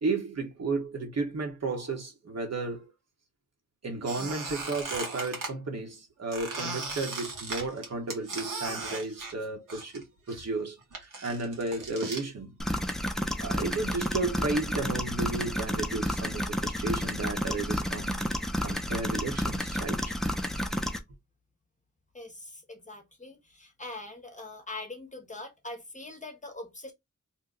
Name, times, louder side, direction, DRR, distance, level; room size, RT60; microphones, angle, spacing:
voice 1, 0.0-2.9 3.8-12.5 13.4-18.2 18.6-20.0, right 3 dB, 55° right, 1.2 m, -33 dB
Squeak, 4.0-5.5 6.3-10.0 10.3-12.2, right 3 dB, 85° right, 1.3 m, -37 dB
sound 1, 12.6-21.0, equal, ahead, 0.4 m, -31 dB
voice 2, 22.1-26.9, left 2 dB, 25° left, 0.9 m, -42 dB
2.8 x 2.2 x 3.6 m
wide cardioid pair, 90°, 31 cm